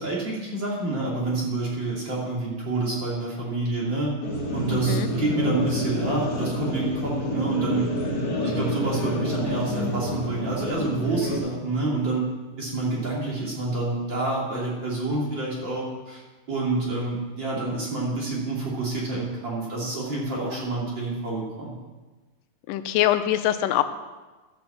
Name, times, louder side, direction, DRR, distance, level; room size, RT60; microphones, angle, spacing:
voice 1, 0.0-4.1 4.5-12.3 12.6-16.2 16.5-21.7, right 2 dB, 35° right, -4 dB, 2.9 m, -28 dB
sound 1, 4.2-11.4, equal, 35° left, 1.9 m, -28 dB
voice 2, 4.7-5.1 22.7-23.8, left 13 dB, 90° left, 10 dB, 2.3 m, -23 dB
12.0 x 6.1 x 7.2 m, 1.2 s
omnidirectional pair, 3.8 m